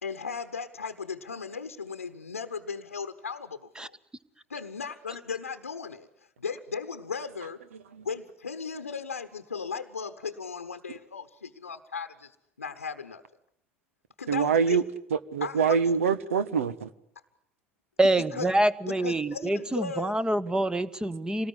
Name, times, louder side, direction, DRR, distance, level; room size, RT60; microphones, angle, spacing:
voice 1, 0.0-4.0 4.5-7.6 8.0-13.2 14.2-14.8 15.4-15.8 18.2-18.5 18.9-20.2, left 5 dB, 90° left, 9 dB, 1.0 m, -36 dB
voice 2, 14.3-14.8 15.1-16.9, right 6 dB, 80° right, 15 dB, 1.3 m, -24 dB
voice 3, 18.0-21.5, right 1 dB, 10° right, 16 dB, 1.5 m, -26 dB
27.0 x 19.5 x 9.8 m, 0.74 s
figure-of-eight pair, 75°, 7 cm